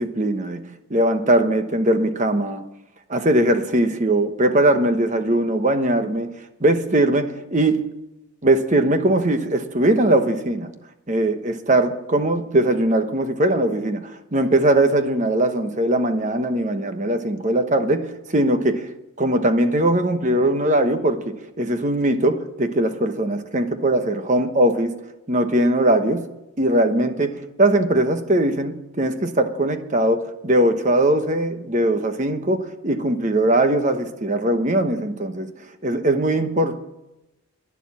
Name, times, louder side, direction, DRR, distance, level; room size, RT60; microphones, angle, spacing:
voice 1, 0.0-2.6 3.1-6.3 6.6-7.9 8.4-10.7 11.1-18.8 19.2-25.0 25.3-26.3 26.6-27.3 27.6-35.5 35.8-36.8, right 1 dB, 35° right, 1.1 m, -20 dB
11.5 x 11.0 x 9.7 m
head